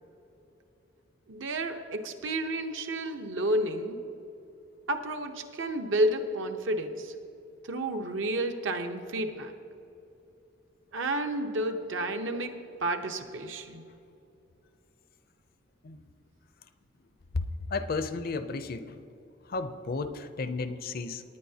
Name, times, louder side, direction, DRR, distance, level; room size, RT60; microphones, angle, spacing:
voice 1, 1.3-4.0 4.9-7.1 7.6-9.6 10.9-13.8, right 1 dB, 65° right, 6 dB, 0.8 m, -31 dB
voice 2, 17.7-19.0 19.5-21.2, left 3 dB, 45° left, 11 dB, 0.5 m, -33 dB
19.0 x 9.6 x 2.8 m, 2.9 s
head